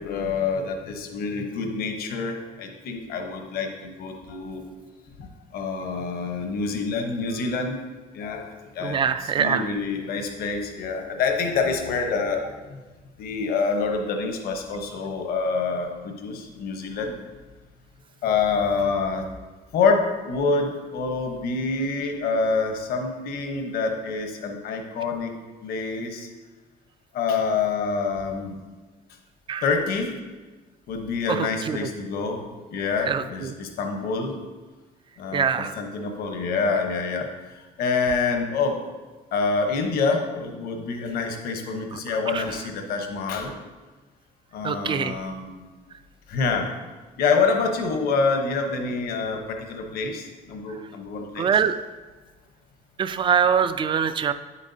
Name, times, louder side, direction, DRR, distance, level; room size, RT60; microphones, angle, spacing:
voice 1, 0.0-4.6 5.2-7.8 8.1-12.8 13.2-17.1 18.2-19.2 19.7-25.3 25.6-26.3 27.1-28.6 29.6-30.2 30.9-32.5 32.7-34.4 35.2-38.8 39.3-43.5 44.5-45.7 46.3-46.7 47.2-51.5, left 4 dB, 75° left, 4 dB, 1.0 m, -26 dB
voice 2, 8.8-9.7 29.5-29.6 31.3-31.9 33.1-33.5 35.3-35.8 41.9-42.0 42.3-42.4 44.6-45.2 51.4-51.8 53.0-54.3, right 7 dB, 30° right, 12 dB, 0.4 m, -24 dB
8.8 x 8.3 x 2.7 m, 1.3 s
cardioid pair, 135°, 16 cm